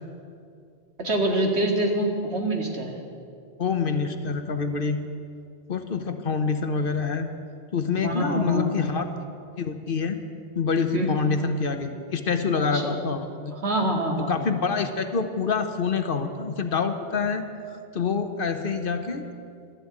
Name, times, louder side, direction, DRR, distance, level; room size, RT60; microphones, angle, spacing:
voice 1, 1.0-3.0 8.0-8.9 10.9-11.3 12.6-13.0 13.5-14.5, right 1 dB, 85° right, 1 dB, 2.3 m, -26 dB
voice 2, 3.6-5.0 5.7-7.3 7.7-9.1 9.6-10.2 10.5-13.5 14.2-19.3, left 5 dB, 60° left, 8 dB, 1.2 m, -26 dB
13.0 x 12.0 x 8.8 m, 2.4 s
omnidirectional pair, 1.1 m